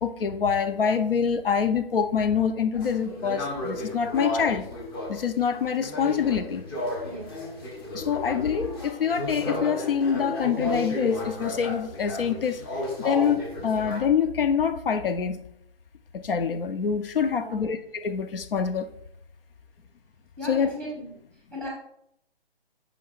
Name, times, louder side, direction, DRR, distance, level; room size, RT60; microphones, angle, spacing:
voice 1, 0.0-4.7 5.1-6.7 7.9-12.6 13.0-15.5 16.1-18.9 20.4-20.7, left 7 dB, 60° left, 11 dB, 0.7 m, -25 dB
sound 1, 2.7-14.0, left 1 dB, 25° left, 1.0 m, -33 dB
voice 2, 20.4-21.1 21.5-21.7, left 1 dB, 5° left, -3 dB, 1.2 m, -36 dB
8.3 x 5.4 x 2.4 m, 0.73 s
hypercardioid pair, 150°, 31 cm